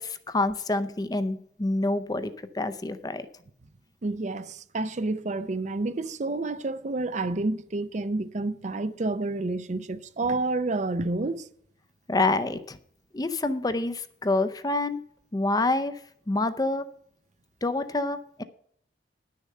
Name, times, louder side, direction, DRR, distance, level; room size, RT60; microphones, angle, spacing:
voice 1, 0.0-3.3 12.1-12.8 13.1-15.0 15.3-16.0 16.3-16.9 17.6-18.4, left 2 dB, 20° left, 0.6 m, -27 dB
voice 2, 4.0-11.5, right 2 dB, 40° right, 0.5 m, -29 dB
10.5 x 6.6 x 6.6 m
head